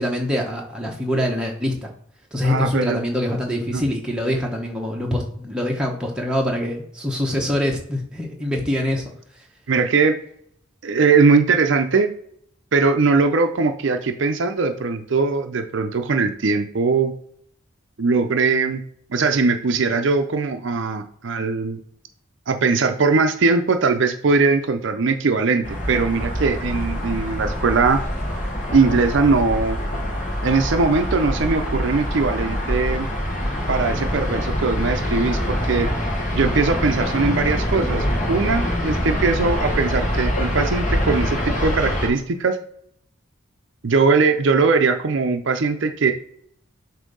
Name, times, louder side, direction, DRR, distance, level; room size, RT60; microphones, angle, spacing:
voice 1, 0.0-1.9 2.3-9.0, left 1 dB, 5° right, -1 dB, 1.0 m, -24 dB
voice 2, 2.4-3.0 3.7-3.8 9.7-10.2 10.8-12.1 12.7-17.1 18.0-18.8 19.1-21.8 22.5-28.0 28.7-29.8 30.4-33.1 33.7-35.9 36.3-42.6 43.8-46.1, right 4 dB, 60° right, 7 dB, 0.5 m, -20 dB
sound 1, 25.6-42.1, equal, 35° left, 1.2 m, -24 dB
7.3 x 2.7 x 5.3 m, 0.66 s
head